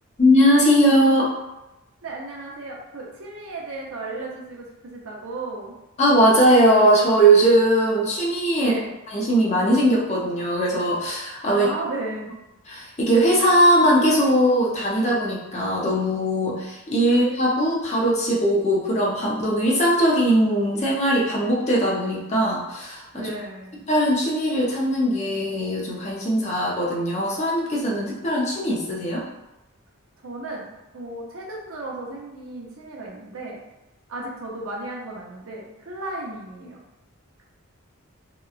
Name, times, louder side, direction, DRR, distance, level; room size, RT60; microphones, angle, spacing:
voice 1, 0.2-1.3 6.0-8.8 9.1-11.7 12.7-23.3 23.9-29.2, right 1 dB, 30° left, -4 dB, 0.6 m, -20 dB
voice 2, 2.0-5.7 8.6-8.9 11.5-12.3 17.1-17.2 23.1-23.8 30.2-33.6 34.1-36.8, right 2 dB, 75° right, -2 dB, 0.6 m, -34 dB
2.8 x 2.2 x 2.4 m, 0.97 s
head